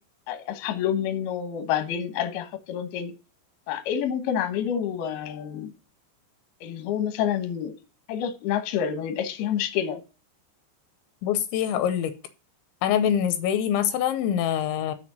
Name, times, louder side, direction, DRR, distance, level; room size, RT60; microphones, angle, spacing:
voice 1, 0.3-3.1 3.7-5.7 6.6-7.7 8.1-10.0, left 9 dB, 70° left, 2.7 m, -28 dB
voice 2, 11.2-12.1 12.8-14.9, left 9 dB, 85° left, 3.0 m, -24 dB
6.5 x 6.1 x 7.4 m
omnidirectional pair, 5.4 m